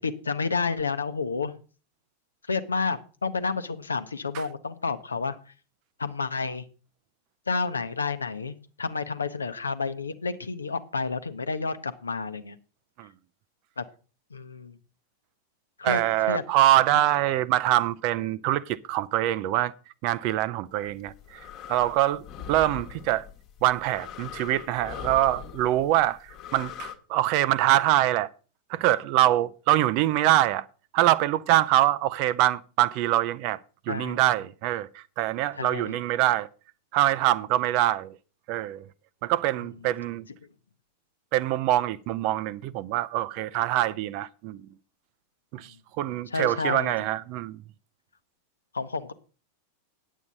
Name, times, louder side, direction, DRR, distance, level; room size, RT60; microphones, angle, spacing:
voice 1, 0.0-1.5 2.5-5.3 6.0-6.6 7.5-12.6 13.8-13.9 14.3-14.8 15.8-16.0 16.3-16.4 16.9-17.0 33.9-34.2 35.6-36.0 46.3-46.9 48.7-49.1, left 4 dB, 75° left, 0.8 m, -30 dB
voice 2, 15.8-19.7 20.0-21.4 21.7-22.2 22.5-23.3 23.6-28.3 28.7-30.7 30.9-33.6 33.9-36.5 36.9-38.2 38.5-38.9 39.2-40.3 41.3-44.6 45.5-47.6, right 14 dB, 45° right, 0.5 m, -24 dB
sound 1, 20.9-26.9, left 9 dB, 40° left, 1.2 m, -41 dB
9.5 x 8.2 x 5.2 m
figure-of-eight pair, 90°, 0 cm